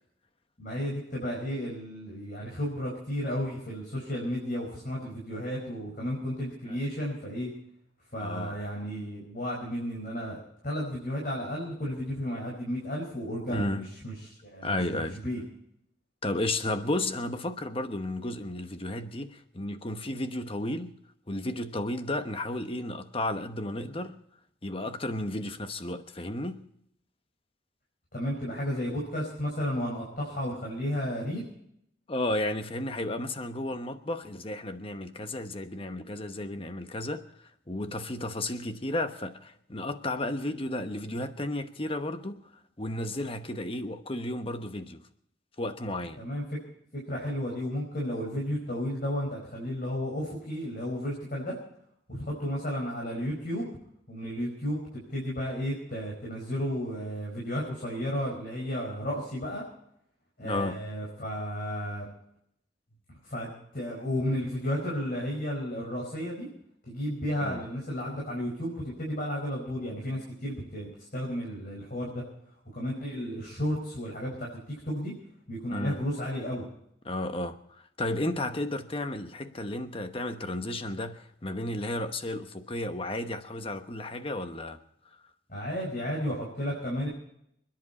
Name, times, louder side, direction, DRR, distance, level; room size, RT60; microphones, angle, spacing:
voice 1, 0.6-7.5 8.1-10.4 10.6-15.4 28.1-31.4 46.2-46.4 46.9-51.5 52.1-53.7 54.1-59.6 60.4-62.1 63.2-66.5 66.9-72.2 72.7-75.1 75.5-76.6 85.5-87.1, equal, 45° left, 5.1 m, -33 dB
voice 2, 8.2-8.6 13.5-13.9 14.6-15.2 16.2-20.9 21.3-24.2 24.6-26.6 32.1-37.3 37.7-42.4 42.8-45.0 45.6-46.2 60.4-60.8 67.4-67.6 75.7-76.0 77.0-84.8, left 1 dB, 30° left, 1.1 m, -33 dB
26.5 x 10.5 x 4.2 m
head